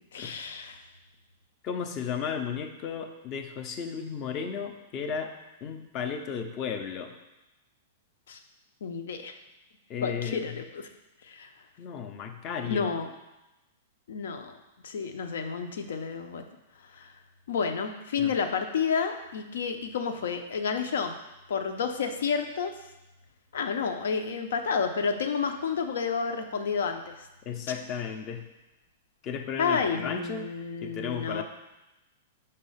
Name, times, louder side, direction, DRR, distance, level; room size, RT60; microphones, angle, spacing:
voice 1, 0.1-0.8 8.3-8.4 8.8-9.3 10.0-10.9 11.2-11.5 12.7-13.1 14.1-14.6 14.8-16.4 16.9-17.1 17.5-21.1 21.5-22.8 23.5-27.3 29.6-31.4, left 6 dB, 80° left, 7 dB, 0.7 m, -30 dB
voice 2, 1.6-5.3 5.6-7.1 9.9-10.6 11.8-12.9 18.2-18.3 27.4-28.5 29.2-30.5 30.8-31.4, left 7 dB, 25° left, 6 dB, 0.5 m, -34 dB
5.4 x 4.1 x 5.6 m, 1.0 s
supercardioid pair, 175°, 0 cm